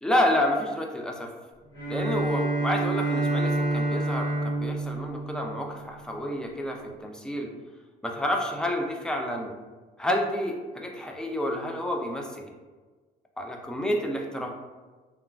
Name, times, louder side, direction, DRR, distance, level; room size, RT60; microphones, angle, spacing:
voice 1, 0.0-1.3 1.9-7.5 8.0-9.5 10.0-12.5 13.4-14.5, left 1 dB, 5° left, 1 dB, 0.3 m, -29 dB
Bowed string instrument, 1.7-6.2, right 2 dB, 25° left, 1.4 m, -28 dB
3.0 x 2.3 x 2.3 m, 1.3 s
cardioid pair, 110°, 17 cm